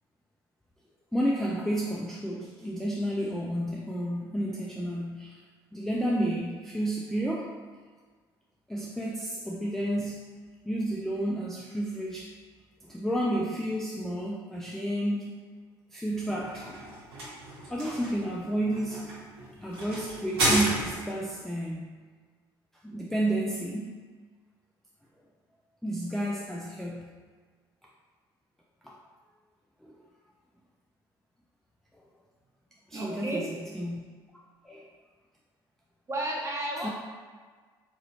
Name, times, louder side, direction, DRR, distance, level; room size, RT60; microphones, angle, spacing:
voice 1, 1.1-5.4 5.7-7.6 8.7-10.2 10.7-12.3 12.8-15.3 15.9-16.8 17.7-19.1 19.6-21.9 22.8-24.0 25.8-27.1 28.8-29.0 29.8-29.9 32.9-34.0 34.6-34.8 36.8-36.9, right 1 dB, 5° left, -4 dB, 0.4 m, -31 dB
sound 1, 16.1-21.3, right 1 dB, 75° right, 1.0 m, -32 dB
voice 2, 32.9-33.5 36.1-36.9, right 1 dB, 20° right, -2 dB, 0.8 m, -32 dB
4.0 x 2.6 x 2.8 m, 1.5 s
figure-of-eight pair, 50°, 13 cm